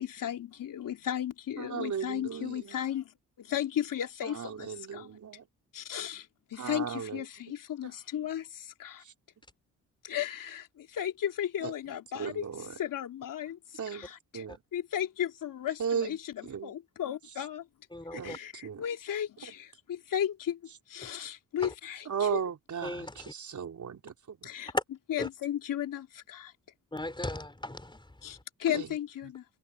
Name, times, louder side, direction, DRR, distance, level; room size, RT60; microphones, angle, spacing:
voice 1, 0.0-5.2 5.7-9.0 10.0-14.4 14.7-17.7 18.1-20.6 20.9-22.4 24.4-24.7 25.1-26.5 28.2-29.4, left 10 dB, 70° left, 3.3 m, -35 dB
voice 2, 1.6-2.7 4.2-5.4 6.6-7.2 11.6-11.7 12.2-12.7 13.8-14.1 14.3-14.6 15.8-16.2 16.5-16.7 18.1-18.8 22.1-24.4 28.7-28.9, right 7 dB, 60° right, 4.3 m, -35 dB
voice 3, 17.9-18.4 21.0-21.1 21.6-21.7 22.8-23.3 24.7-24.8 25.2-25.3 26.9-28.1, left 1 dB, 15° left, 3.5 m, -36 dB
supercardioid pair, 55°, 33 cm